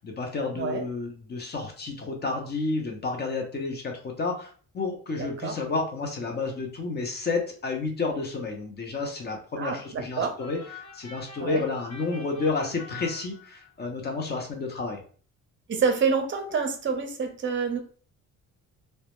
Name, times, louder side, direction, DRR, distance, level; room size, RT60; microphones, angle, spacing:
voice 1, 0.0-10.6 10.9-15.0, left 3 dB, 30° left, 2 dB, 0.5 m, -31 dB
voice 2, 5.2-5.6 9.6-10.4 11.4-11.6 15.7-17.8, right 5 dB, 35° right, 5 dB, 0.5 m, -27 dB
sound 1, 10.4-13.9, left 4 dB, 55° left, 0.9 m, -45 dB
2.1 x 2.0 x 2.9 m, 0.42 s
cardioid pair, 120°, 32 cm